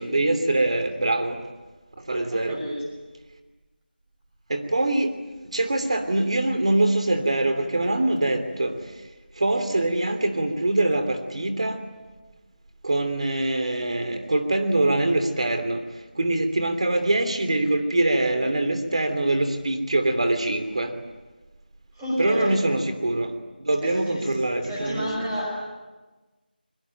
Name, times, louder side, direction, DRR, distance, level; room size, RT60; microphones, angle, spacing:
voice 1, 0.0-1.4 2.1-2.6 4.5-5.1 5.5-8.8 9.4-11.8 12.8-15.8 16.2-20.9 22.2-23.3 23.6-25.5, right 2 dB, 40° right, 7 dB, 3.0 m, -24 dB
voice 2, 2.3-2.8 21.9-22.5 23.8-24.3 24.6-25.5, equal, 5° right, -6 dB, 6.4 m, -30 dB
25.5 x 23.0 x 9.1 m, 1.2 s
figure-of-eight pair, 175°, 5 cm